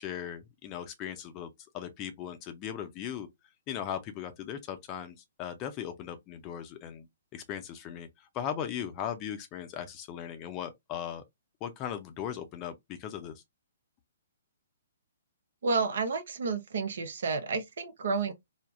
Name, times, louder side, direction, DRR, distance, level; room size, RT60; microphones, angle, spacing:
voice 1, 0.0-3.3 3.7-7.1 7.3-11.2 11.6-13.3, left 9 dB, 30° left, 0.5 m, -38 dB
voice 2, 15.6-18.3, right 4 dB, 65° right, 0.6 m, -30 dB
3.3 x 2.0 x 2.4 m
figure-of-eight pair, 125°, 0 cm